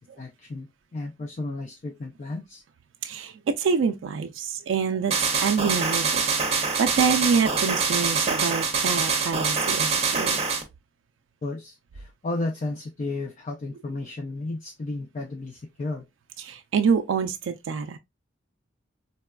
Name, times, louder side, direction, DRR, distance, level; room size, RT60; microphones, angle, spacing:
voice 1, 0.0-2.6 11.4-16.0, left 2 dB, 40° left, 0.4 m, -33 dB
voice 2, 3.0-6.2 6.5-10.4 16.4-18.0, right 6 dB, 80° right, 0.3 m, -26 dB
sound 1, 5.1-10.6, right 5 dB, 35° right, 0.7 m, -25 dB
4.0 x 2.2 x 2.2 m
head